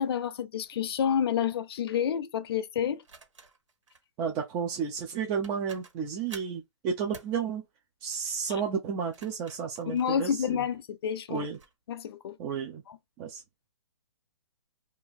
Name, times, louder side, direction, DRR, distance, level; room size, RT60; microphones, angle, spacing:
voice 1, 0.0-3.0 9.9-11.4 11.9-12.4, left 8 dB, 55° left, 0.5 m, -29 dB
sound 1, 0.6-0.8 3.0-4.0 5.1-5.2 5.4-6.6 7.1-7.4 8.9-10.8 11.3-11.7, right 4 dB, 85° right, 1.6 m, -51 dB
voice 2, 4.2-7.6 8.0-10.7 11.3-11.6 12.4-12.8 13.2-13.4, right 6 dB, 15° right, 0.4 m, -32 dB
2.8 x 2.4 x 4.0 m
hypercardioid pair, 155°, 16 cm